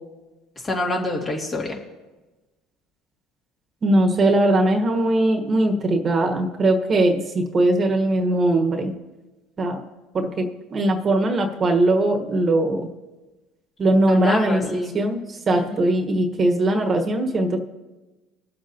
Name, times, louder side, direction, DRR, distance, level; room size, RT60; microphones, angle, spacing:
voice 1, 0.6-1.8 14.1-14.9 15.6-15.8, left 2 dB, 30° left, 0 dB, 2.4 m, -27 dB
voice 2, 3.8-8.9 9.6-9.8 10.1-12.9 13.8-17.6, right 1 dB, 35° right, 3 dB, 1.4 m, -20 dB
20.0 x 7.6 x 2.9 m, 1.1 s
supercardioid pair, 80°, 0 cm